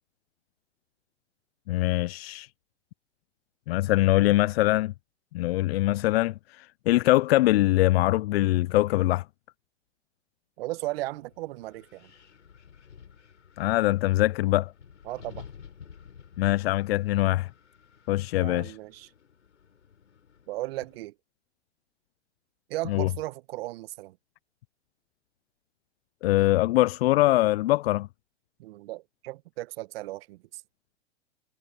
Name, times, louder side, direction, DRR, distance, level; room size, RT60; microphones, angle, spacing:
voice 1, 1.7-2.5 3.7-4.9 5.3-9.2 13.6-14.7 16.4-17.5 18.1-18.8 22.9-23.1 26.2-28.1, left 17 dB, 60° left, 0.5 m, -23 dB
voice 2, 10.6-12.1 15.0-15.5 18.4-19.1 20.5-21.1 22.7-24.2 28.6-30.6, right 18 dB, 55° right, 1.4 m, -36 dB
Wind, 11.1-21.1, left 7 dB, 85° left, 7.1 m, -52 dB
hypercardioid pair, 115°, 35 cm